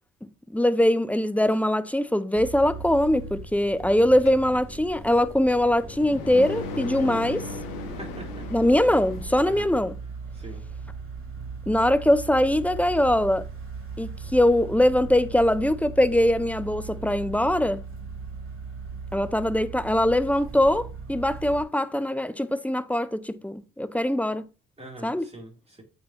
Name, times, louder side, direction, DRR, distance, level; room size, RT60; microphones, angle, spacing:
voice 1, 0.5-7.5 8.5-9.9 11.7-13.5 14.0-17.8 19.1-24.4 25.0-25.3, left 1 dB, 5° left, 0.5 m, -22 dB
sound 1, 2.3-21.6, right 4 dB, 35° right, 2.7 m, -39 dB
sound 2, 4.3-9.8, left 3 dB, 80° left, 1.1 m, -37 dB
voice 2, 7.9-8.4 9.4-9.7 10.3-10.6 24.8-25.8, right 1 dB, 15° right, 3.1 m, -42 dB
8.4 x 4.0 x 2.9 m
hypercardioid pair, 45°, 35 cm